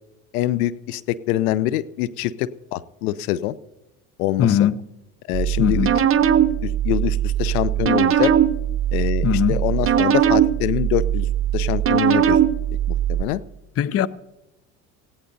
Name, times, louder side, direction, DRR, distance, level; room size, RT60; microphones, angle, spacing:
voice 1, 0.3-3.6 4.2-4.7 5.3-5.9 6.6-8.3 8.9-11.3 11.5-12.4 13.1-13.4, left 13 dB, 80° left, 0.6 m, -24 dB
voice 2, 4.4-4.7 5.6-6.0 9.2-9.6 13.8-14.1, left 9 dB, 35° left, 0.6 m, -20 dB
sound 1, 5.3-13.2, right 10 dB, 30° right, 0.8 m, -20 dB
19.0 x 16.0 x 2.7 m
hypercardioid pair, 70°, 43 cm